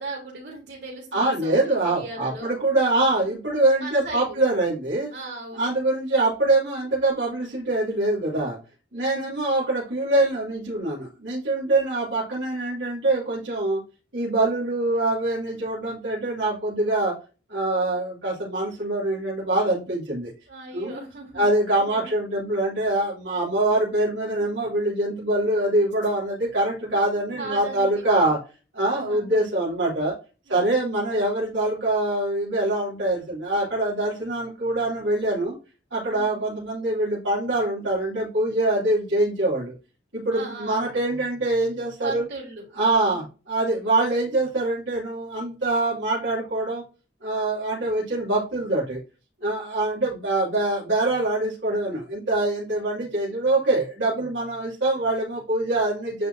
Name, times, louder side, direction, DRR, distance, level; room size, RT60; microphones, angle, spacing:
voice 1, 0.0-2.5 3.8-4.4 5.1-5.7 8.9-9.3 20.5-21.5 21.8-22.1 27.3-28.3 28.8-29.4 30.5-31.0 36.1-36.4 40.3-40.9 42.0-42.6 43.0-43.3, right 3 dB, 65° right, -2 dB, 3.4 m, -38 dB
voice 2, 1.1-5.1 5.5-8.6 8.9-13.8 14.1-17.1 17.5-20.3 20.7-21.0 21.3-28.4 28.7-30.1 30.5-35.5 35.9-39.7 40.1-42.2 42.7-46.8 47.2-49.0 49.4-56.3, right 2 dB, 80° right, -7 dB, 2.7 m, -24 dB
9.9 x 3.7 x 2.7 m, 0.33 s
head